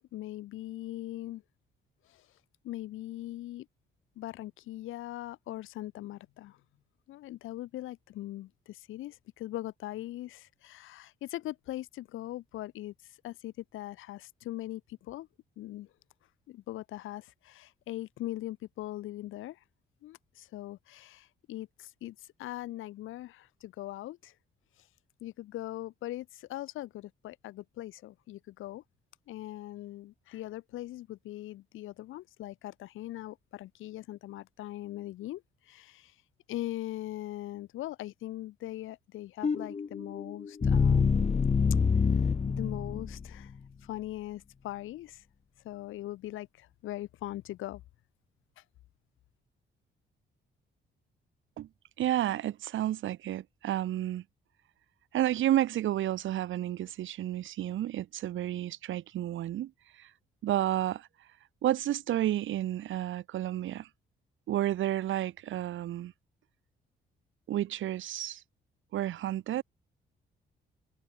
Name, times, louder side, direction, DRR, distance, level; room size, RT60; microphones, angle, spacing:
voice 1, 0.1-1.4 2.1-2.3 2.6-3.7 4.2-6.6 7.1-15.3 15.6-15.9 16.5-19.6 20.0-24.3 24.8-24.9 25.2-28.8 29.3-36.1 36.5-41.5 42.5-43.5 43.8-45.2 45.6-47.8 48.6-48.7, left 15 dB, 85° left, 4.7 m, -41 dB
sound 1, 39.4-43.5, left 5 dB, 35° left, 1.5 m, -27 dB
voice 2, 52.0-54.2 55.1-59.7 60.0-60.1 60.4-61.1 61.6-63.9 64.5-66.1 67.5-68.4 68.9-69.6, right 12 dB, 75° right, 3.2 m, -31 dB
cardioid pair, 90°, 20 cm